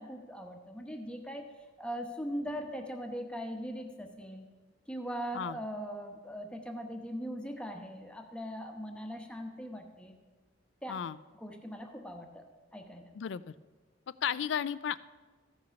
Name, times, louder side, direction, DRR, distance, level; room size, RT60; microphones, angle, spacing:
voice 1, 0.0-1.4 1.8-4.5 4.9-10.2 10.8-11.0 11.3-12.4 12.7-13.1, equal, 5° left, 3 dB, 1.0 m, -40 dB
voice 2, 13.1-13.5 14.1-15.0, left 8 dB, 75° left, 17 dB, 0.4 m, -34 dB
14.5 x 6.8 x 5.2 m, 1.3 s
head